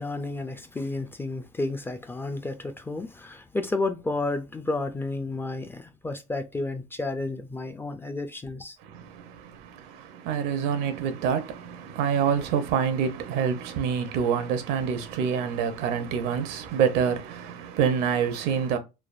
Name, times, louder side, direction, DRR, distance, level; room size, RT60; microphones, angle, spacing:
voice 1, 0.0-8.8, left 2 dB, 15° left, 0.3 m, -31 dB
voice 2, 8.8-18.8, right 7 dB, 70° right, 0.6 m, -27 dB
3.3 x 2.0 x 2.4 m
supercardioid pair, 100°, 17 cm